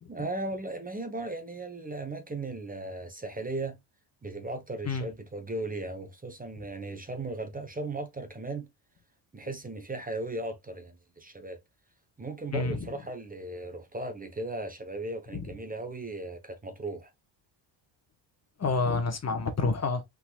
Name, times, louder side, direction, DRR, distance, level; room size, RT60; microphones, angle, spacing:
voice 1, 0.1-3.8 4.2-8.7 9.3-11.6 12.2-17.1, right 2 dB, 20° right, 1.2 m, -37 dB
voice 2, 18.6-20.0, left 3 dB, 35° left, 1.3 m, -28 dB
5.4 x 4.1 x 2.4 m
cardioid pair, 125°, 46 cm